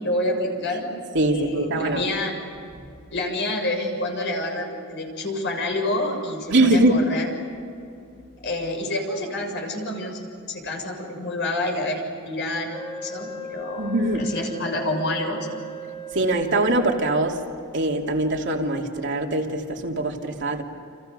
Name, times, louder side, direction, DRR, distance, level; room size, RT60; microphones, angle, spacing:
voice 1, 0.0-0.9 1.3-2.4 3.1-7.3 8.4-15.6, left 1 dB, 55° left, 2 dB, 7.0 m, -28 dB
voice 2, 1.1-2.0 6.5-7.0 13.8-14.3 16.1-17.4 17.7-20.6, right 2 dB, 55° right, 1 dB, 2.9 m, -22 dB
Wind instrument woodwind instrument, 12.7-17.4, right 3 dB, 20° left, 2.1 m, -37 dB
29.5 x 29.0 x 6.9 m, 2.5 s
head